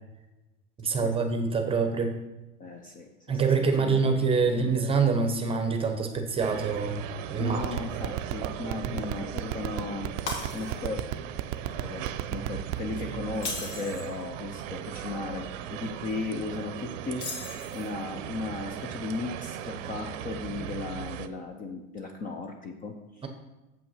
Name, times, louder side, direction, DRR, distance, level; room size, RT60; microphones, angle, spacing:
voice 1, 0.8-2.2 3.3-7.0 7.3-7.6 7.9-8.0 8.9-9.0, right 5 dB, 15° right, 5 dB, 0.8 m, -25 dB
voice 2, 2.6-4.3 4.5-4.8 7.4-10.1 10.5-11.2 11.8-23.2, left 3 dB, 25° left, 4 dB, 0.5 m, -36 dB
sound 1, 6.4-21.3, right 10 dB, 85° right, 0.7 m, -38 dB
sound 2, 7.5-12.9, right 17 dB, 50° right, 0.4 m, -30 dB
Shatter, 10.3-11.0 11.5-11.7 13.3-14.1 17.1-18.0, left 3 dB, 70° left, 2.2 m, -37 dB
7.4 x 5.7 x 5.6 m, 1.0 s
supercardioid pair, 155°, 37 cm